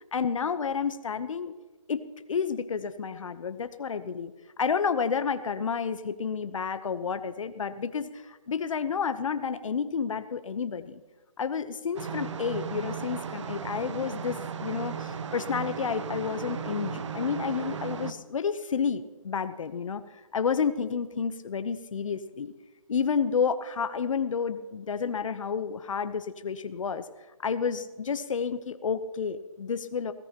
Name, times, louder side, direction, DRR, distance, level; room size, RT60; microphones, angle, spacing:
voice 1, 0.1-1.6 1.9-4.3 4.6-11.0 11.4-22.5 22.9-27.1 27.4-30.1, left 6 dB, 65° left, 11 dB, 0.9 m, -30 dB
sound 1, 12.0-18.1, right 6 dB, 60° right, 0.9 m, -36 dB
20.0 x 17.0 x 3.0 m, 1.2 s
hypercardioid pair, 160°, 18 cm